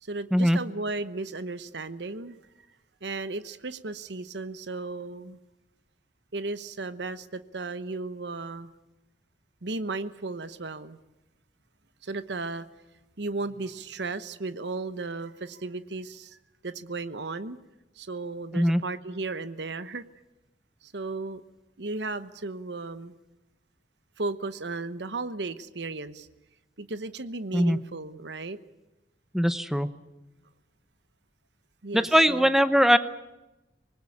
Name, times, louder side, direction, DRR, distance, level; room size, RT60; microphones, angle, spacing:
voice 1, 0.0-2.4 3.0-5.4 6.3-8.7 9.6-11.0 12.0-12.7 13.2-16.4 16.6-17.6 17.9-20.0 20.8-21.4 21.8-23.1 24.2-26.3 26.8-28.6 31.8-32.5, right 3 dB, 80° right, 13 dB, 1.1 m, -35 dB
voice 2, 29.3-29.9 31.9-33.0, equal, ahead, 12 dB, 0.8 m, -21 dB
26.0 x 20.0 x 8.6 m, 1.0 s
head